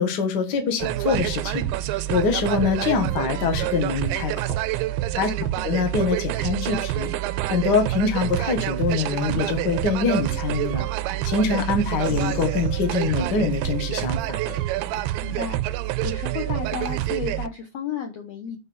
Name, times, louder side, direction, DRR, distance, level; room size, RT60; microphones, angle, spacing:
voice 1, 0.0-1.6 1.9-4.5 5.2-5.3 5.6-7.1 7.5-10.8 11.2-14.4, left 4 dB, 60° left, 4 dB, 1.0 m, -24 dB
sound 1, 0.8-17.5, right 15 dB, 90° right, 2.6 m, -27 dB
voice 2, 5.3-5.7 15.2-15.6 16.0-18.6, left 6 dB, 85° left, 2 dB, 1.4 m, -33 dB
sound 2, 12.0-13.4 14.5-15.0 15.6-16.0 16.8-17.1, left 4 dB, 45° left, 1.6 m, -41 dB
8.8 x 4.2 x 6.9 m, 0.30 s
omnidirectional pair, 4.6 m